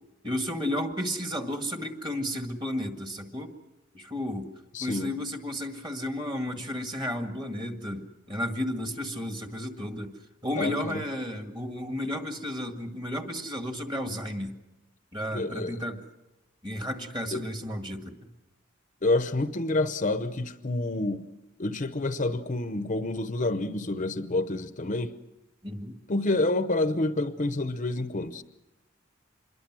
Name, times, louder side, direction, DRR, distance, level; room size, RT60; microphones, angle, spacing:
voice 1, 0.2-3.5 3.9-4.5 4.8-14.5 15.1-16.0 16.6-18.3 25.6-26.0, left 1 dB, 25° right, 5 dB, 1.9 m, -33 dB
voice 2, 4.7-5.1 10.6-11.0 15.3-15.8 17.3-17.4 19.0-21.2 21.6-25.1 26.1-28.4, left 2 dB, 40° left, 11 dB, 0.8 m, -28 dB
26.5 x 22.0 x 6.2 m, 1.0 s
head